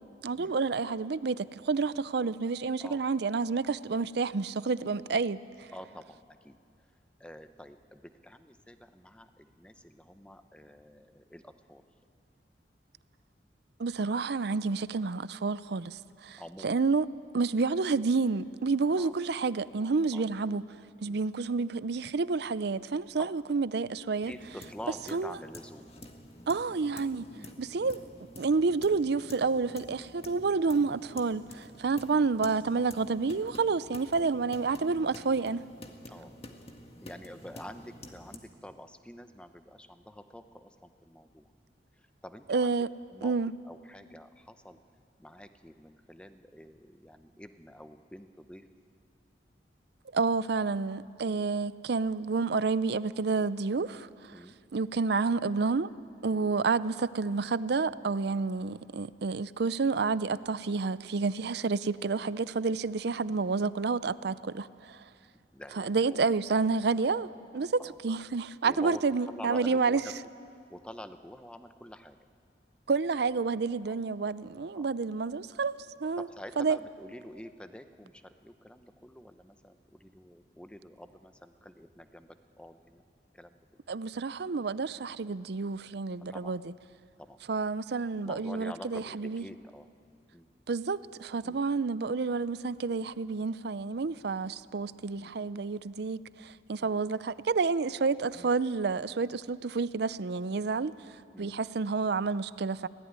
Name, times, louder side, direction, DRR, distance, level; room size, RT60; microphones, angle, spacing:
voice 1, 0.2-5.7 13.8-17.1 17.3-20.6 21.0-24.3 25.1-25.3 26.5-27.3 27.6-28.0 28.4-35.6 42.5-42.9 43.2-43.5 50.1-54.1 54.7-55.9 56.2-65.0 65.8-67.3 67.5-70.0 72.9-75.7 76.0-76.3 76.6-76.8 83.9-86.6 87.5-89.4 90.7-100.9 101.4-102.9, right 4 dB, 65° right, 0.5 m, -29 dB
voice 2, 5.7-6.6 7.2-11.8 16.4-16.8 19.0-19.1 20.1-20.2 21.0-21.2 23.2-23.3 24.3-25.9 27.3-27.5 36.1-36.3 37.0-41.5 41.9-42.7 43.1-43.4 43.6-44.8 45.2-48.6 54.3-54.6 56.2-56.4 65.5-66.2 66.5-66.6 67.8-68.0 68.6-70.1 70.7-72.2 73.9-74.0 74.7-74.9 76.2-83.0 83.3-83.8 86.3-86.6 87.2-87.4 88.2-89.9 90.3-90.5 91.4-91.6 95.2-95.3 96.8-96.9 98.3-98.5 101.3-101.6, equal, 5° left, 0.9 m, -47 dB
sound 1, 24.2-38.4, left 1 dB, 35° left, 1.7 m, -49 dB
24.5 x 17.5 x 9.6 m
head